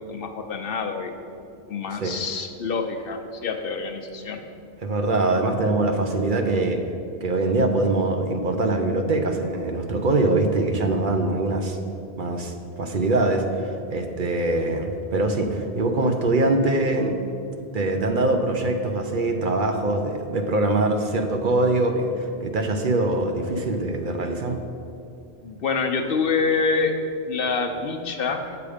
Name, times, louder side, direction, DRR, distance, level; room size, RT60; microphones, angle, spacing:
voice 1, 0.1-1.1 1.7-4.5 25.4-26.9 27.3-28.6, left 4 dB, 60° left, 5 dB, 0.8 m, -26 dB
voice 2, 4.8-6.8 7.2-11.8 12.2-17.1 17.7-24.6, right 2 dB, 55° right, 4 dB, 0.8 m, -23 dB
8.2 x 6.9 x 5.0 m, 2.6 s
omnidirectional pair, 1.1 m